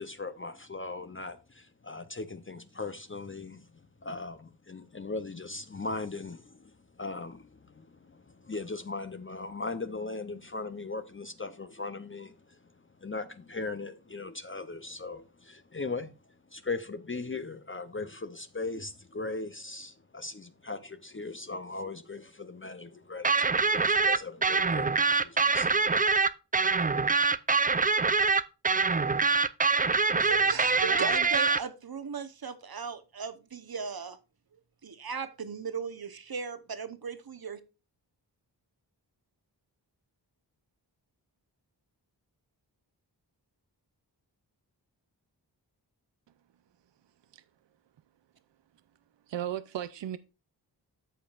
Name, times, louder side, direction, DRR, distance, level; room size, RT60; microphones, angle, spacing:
voice 1, 0.0-16.1 16.5-26.0, left 3 dB, 30° left, 0.6 m, -39 dB
sound 1, 23.2-31.6, right 4 dB, 20° right, 0.4 m, -24 dB
voice 2, 30.2-34.2 34.8-37.6, right 6 dB, 55° right, 1.0 m, -37 dB
voice 3, 49.3-50.2, right 11 dB, 85° right, 0.5 m, -35 dB
13.5 x 5.1 x 2.4 m
wide cardioid pair, 90°, 42 cm